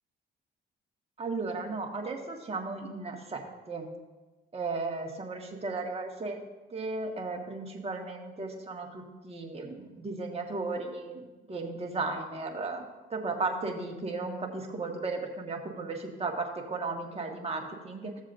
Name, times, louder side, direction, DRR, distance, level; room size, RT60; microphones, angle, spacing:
voice 1, 1.2-3.9 4.5-6.4 6.7-12.8 13.1-18.1, right 3 dB, 30° right, 1 dB, 1.7 m, -35 dB
15.0 x 7.2 x 2.6 m, 1.2 s
cardioid pair, 90°, 20 cm